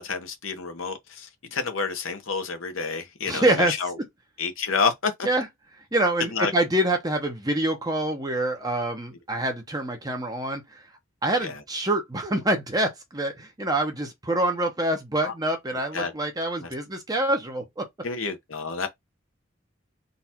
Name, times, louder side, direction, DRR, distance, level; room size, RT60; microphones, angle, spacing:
voice 1, 0.0-3.9 4.4-5.1 6.3-6.5 11.4-11.6 15.2-15.3 15.9-16.1 16.6-16.7 18.0-18.9, left 5 dB, 75° left, 1.1 m, -29 dB
voice 2, 3.2-3.7 5.2-5.4 5.9-10.8 11.2-17.9, right 1 dB, 20° right, 0.9 m, -26 dB
4.0 x 2.5 x 4.3 m
head